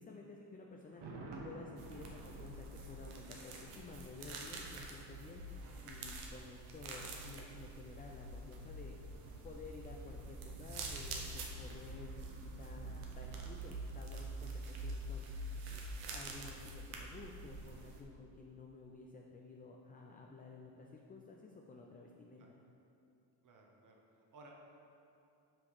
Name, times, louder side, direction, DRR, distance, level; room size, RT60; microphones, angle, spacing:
voice 1, 0.0-5.4 5.8-9.0 9.4-15.8 16.1-22.5, left 3 dB, 20° left, 0 dB, 0.4 m, -53 dB
Thunder, 0.8-4.8 5.0-5.1, right 2 dB, 55° right, 1.5 m, -52 dB
sound 1, 1.8-18.0, right 2 dB, 80° right, 1.1 m, -46 dB
voice 2, 23.4-24.5, right 2 dB, 40° right, 0 dB, 1.0 m, -59 dB
6.2 x 5.6 x 4.8 m, 2.7 s
cardioid pair, 100°, 50 cm